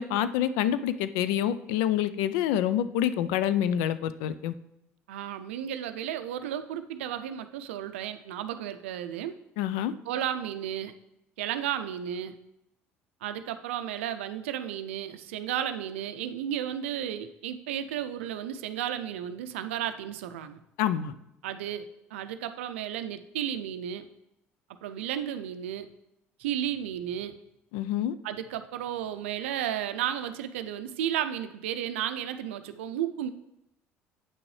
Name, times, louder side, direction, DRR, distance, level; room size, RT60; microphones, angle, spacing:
voice 1, 0.0-4.5 9.6-9.9 20.8-21.1 27.7-28.1, left 10 dB, 75° left, 13 dB, 0.4 m, -27 dB
voice 2, 5.1-9.4 10.1-10.9 11.4-12.4 13.2-20.6 21.4-24.1 24.8-25.9 26.4-27.3 28.2-33.3, right 10 dB, 85° right, 10 dB, 0.4 m, -33 dB
8.3 x 6.0 x 3.2 m, 0.83 s
hypercardioid pair, 65°, 6 cm